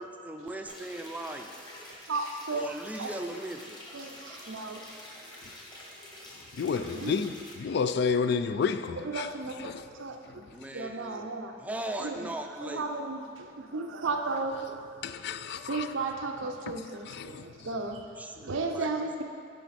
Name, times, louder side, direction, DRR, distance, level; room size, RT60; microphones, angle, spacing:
voice 1, 0.0-1.6 2.5-3.8 10.5-11.3 11.6-12.8 18.2-19.2, right 1 dB, 10° right, 0.4 m, -39 dB
sound 1, 0.7-7.5, left 1 dB, 25° left, 1.2 m, -47 dB
voice 2, 2.1-3.1 3.9-4.9 6.9-7.2 9.0-10.4 10.7-11.6 12.0-12.3 12.6-14.8 15.7-19.2, right 3 dB, 85° right, 0.7 m, -34 dB
voice 3, 6.5-9.3 9.6-9.8 10.3-10.5 15.0-15.9 17.1-17.5, left 5 dB, 60° left, 0.3 m, -30 dB
10.5 x 5.1 x 4.2 m
head